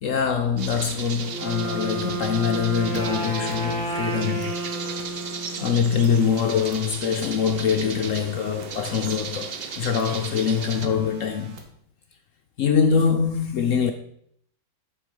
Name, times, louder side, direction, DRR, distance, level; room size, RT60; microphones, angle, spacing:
voice 1, 0.0-4.5 5.6-11.6 12.6-13.9, left 6 dB, 70° left, 0.7 m, -23 dB
sound 1, 0.6-10.9, right 6 dB, 65° right, 0.6 m, -36 dB
Wind instrument woodwind instrument, 1.2-6.1, right 2 dB, 10° right, 2.4 m, -31 dB
sound 2, 2.9-3.6 4.4-5.1 6.0-6.8 8.6-9.2 10.0-11.6, right 4 dB, 85° right, 1.9 m, -44 dB
7.9 x 6.0 x 5.3 m
omnidirectional pair, 2.0 m